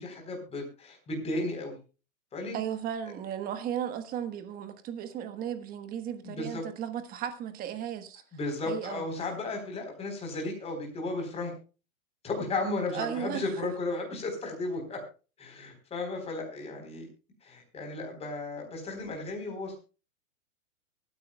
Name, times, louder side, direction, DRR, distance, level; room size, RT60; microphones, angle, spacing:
voice 1, 0.0-1.8 2.3-2.6 6.2-6.6 8.3-11.5 12.2-15.0 15.4-17.1 17.4-19.8, left 2 dB, 15° left, 3.9 m, -34 dB
voice 2, 2.5-8.2 8.7-9.0 12.9-13.5, right 9 dB, 20° right, 1.3 m, -35 dB
23.5 x 9.6 x 2.3 m
hypercardioid pair, 155°, 42 cm